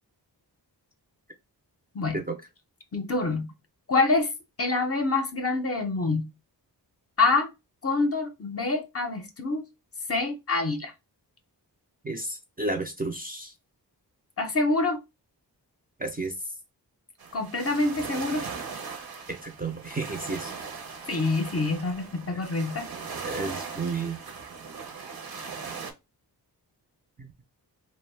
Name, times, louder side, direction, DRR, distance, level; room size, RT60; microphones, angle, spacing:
voice 1, 2.9-3.5 3.9-4.3 4.6-6.2 7.2-7.5 7.8-9.7 10.1-10.9 14.4-15.0 17.3-18.5 21.1-22.9, left 3 dB, 35° left, 0.5 m, -26 dB
voice 2, 12.0-13.5 16.0-16.3 19.3-20.5 23.2-24.2 27.2-27.3, right 3 dB, 20° right, 0.4 m, -32 dB
sound 1, 17.2-25.9, right 5 dB, 60° right, 0.7 m, -39 dB
2.5 x 2.1 x 3.1 m
wide cardioid pair, 95°, 41 cm